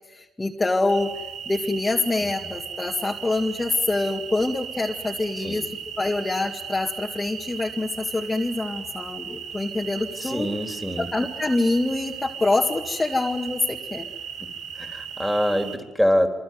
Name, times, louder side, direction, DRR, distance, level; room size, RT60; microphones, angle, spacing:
voice 1, 0.1-1.1 1.5-5.7 6.0-10.5 11.0-14.1, left 2 dB, 20° left, 0 dB, 2.0 m, -25 dB
sound 1, 0.9-15.8, right 8 dB, 85° right, 4.8 m, -37 dB
voice 2, 2.2-2.5 5.4-5.7 10.2-11.1 14.4-14.5 14.7-16.3, equal, ahead, 5 dB, 3.7 m, -25 dB
26.0 x 24.5 x 9.5 m, 1.1 s
cardioid pair, 90°, 0 cm